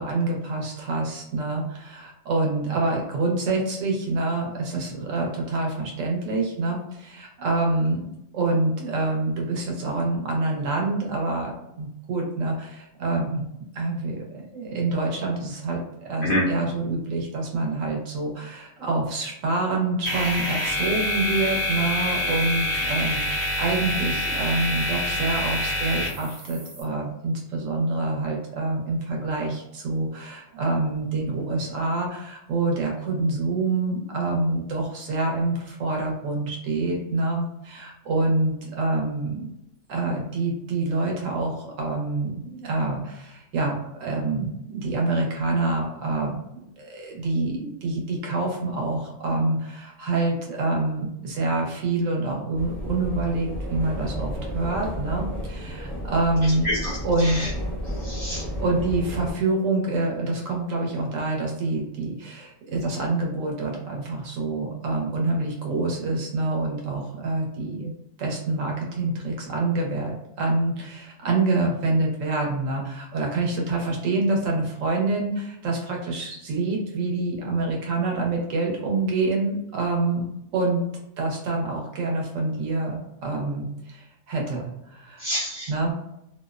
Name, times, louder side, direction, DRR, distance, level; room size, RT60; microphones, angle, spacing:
voice 1, 0.0-13.4 13.7-39.5 39.9-57.4 58.6-67.9 68.2-80.2 80.5-80.8 81.2-85.3 85.7-85.9, right 2 dB, 75° right, 0 dB, 1.1 m, -26 dB
sound 1, 20.0-26.8, left 1 dB, 35° right, 0.7 m, -27 dB
sound 2, 52.5-59.3, equal, ahead, 0.4 m, -32 dB
voice 2, 58.0-58.4 85.2-85.9, equal, 65° left, -4 dB, 0.5 m, -27 dB
2.6 x 2.0 x 2.3 m, 0.84 s
omnidirectional pair, 1.4 m